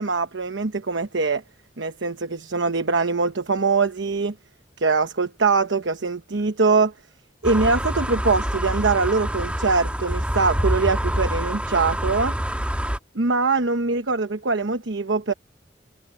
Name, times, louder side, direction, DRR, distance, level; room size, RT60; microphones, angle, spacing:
voice 1, 0.0-1.4 1.8-4.3 4.8-6.9 7.4-12.3 13.1-15.3, right 4 dB, 85° right, 1.0 m, -22 dB
sound 1, 7.4-13.0, equal, 5° right, 1.9 m, -26 dB
head